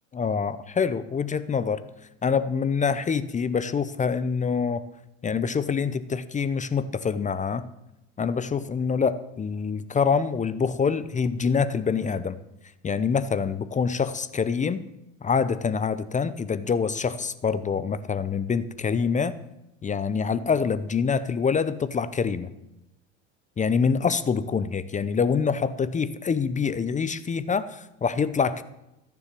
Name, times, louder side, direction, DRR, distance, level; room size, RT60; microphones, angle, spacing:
voice 1, 0.1-1.8 2.2-4.8 5.2-7.7 8.2-12.4 12.8-14.8 15.2-19.4 19.8-22.5 23.6-28.6, left 6 dB, 20° left, 14 dB, 0.7 m, -25 dB
14.5 x 7.0 x 7.5 m, 0.88 s
hypercardioid pair, 85°, 36 cm